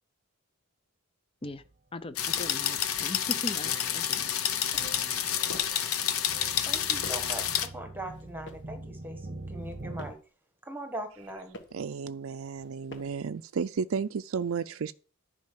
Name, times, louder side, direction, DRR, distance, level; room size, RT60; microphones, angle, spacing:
sound 1, 1.4-1.7 2.4-2.5 2.8-10.1, right 2 dB, 35° right, 0.9 m, -45 dB
voice 1, 1.9-4.3, left 2 dB, 25° left, 0.6 m, -39 dB
sound 2, 2.2-7.7, left 9 dB, 75° left, 0.9 m, -29 dB
sound 3, 5.4-5.9 6.5-7.4 8.1-8.8 9.5-10.3 11.0-11.9 12.5-13.3, left 1 dB, 55° left, 1.4 m, -48 dB
voice 2, 6.6-10.2 10.6-11.6, right 1 dB, 10° right, 1.5 m, -40 dB
voice 3, 11.7-14.9, right 5 dB, 65° right, 0.4 m, -33 dB
10.5 x 5.3 x 7.4 m
head